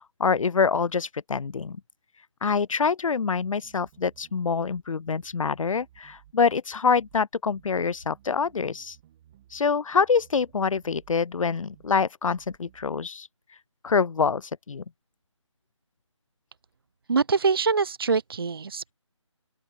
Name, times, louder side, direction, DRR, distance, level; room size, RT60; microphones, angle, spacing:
voice 1, 0.0-1.8 2.4-9.0 9.5-13.3 13.8-14.8, left 5 dB, 90° left, 0.4 m, -25 dB
sound 1, 3.3-4.8 5.1-6.4 6.9-7.2 7.5-9.6 9.9-11.2 11.7-12.0 12.3-12.9, right 12 dB, 15° right, 1.3 m, -57 dB
voice 2, 17.1-18.9, right 5 dB, 45° right, 0.4 m, -24 dB
open air
figure-of-eight pair, 165°, 16 cm